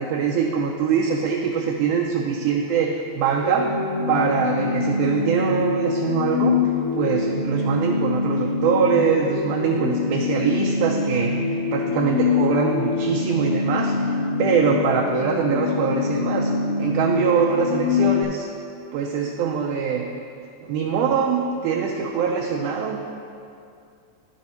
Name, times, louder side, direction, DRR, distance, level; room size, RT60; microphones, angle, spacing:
voice 1, 0.0-3.7 4.1-6.6 7.0-14.1 14.4-16.5 16.8-18.5 18.9-20.1 20.7-23.0, right 6 dB, 90° right, -1 dB, 2.1 m, -23 dB
sound 1, 3.4-18.2, left 4 dB, 85° left, 2.4 m, -24 dB
10.5 x 6.2 x 4.2 m, 2.5 s
omnidirectional pair, 3.5 m